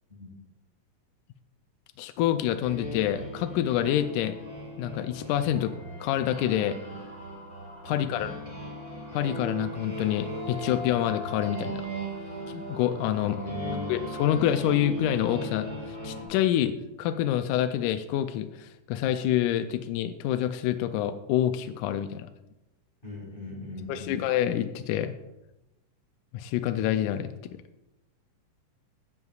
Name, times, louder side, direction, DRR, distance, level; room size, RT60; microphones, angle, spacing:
voice 1, 2.0-4.3 4.8-5.7 6.0-6.8 7.8-8.3 9.1-11.8 12.5-13.4 13.9-15.7 16.0-16.7 17.0-22.3 23.9-25.1 26.3-27.3, left 11 dB, 80° left, 8 dB, 1.8 m, -27 dB
sound 1, 2.6-16.2, equal, 10° right, 2.1 m, -38 dB
voice 2, 7.9-8.6 13.2-13.9 23.0-24.3, left 2 dB, 20° left, -2 dB, 1.9 m, -39 dB
15.0 x 9.5 x 2.4 m, 0.97 s
omnidirectional pair, 3.8 m